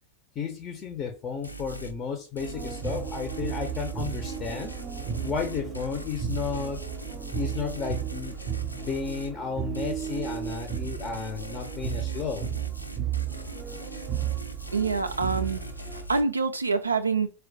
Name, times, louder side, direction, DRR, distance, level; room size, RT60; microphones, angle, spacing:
voice 1, 0.4-4.7 5.2-6.8 7.3-8.4 8.7-12.5, left 6 dB, 30° left, 0.5 m, -33 dB
sound 1, 1.4-2.0 2.4-9.4 9.7-16.2, right 3 dB, 85° left, 0.4 m, -40 dB
sound 2, 2.4-16.1, right 9 dB, 30° right, 0.6 m, -34 dB
voice 2, 14.7-15.6 16.1-17.3, right 4 dB, 80° right, 0.3 m, -25 dB
4.3 x 2.2 x 2.6 m
figure-of-eight pair, 90°, 0 cm